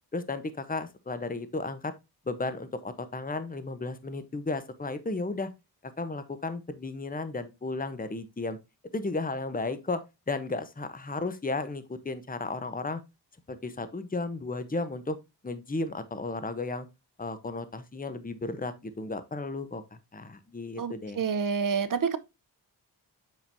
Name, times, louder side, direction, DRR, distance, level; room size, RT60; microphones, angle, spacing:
voice 1, 0.1-1.9 2.3-5.5 5.8-8.6 8.9-13.0 13.6-15.2 15.4-16.9 17.2-19.8 20.1-21.2, left 3 dB, 20° left, 0.9 m, -34 dB
voice 2, 20.8-22.2, right 6 dB, 50° right, 0.8 m, -28 dB
7.4 x 5.1 x 2.7 m
cardioid pair, 60°, 42 cm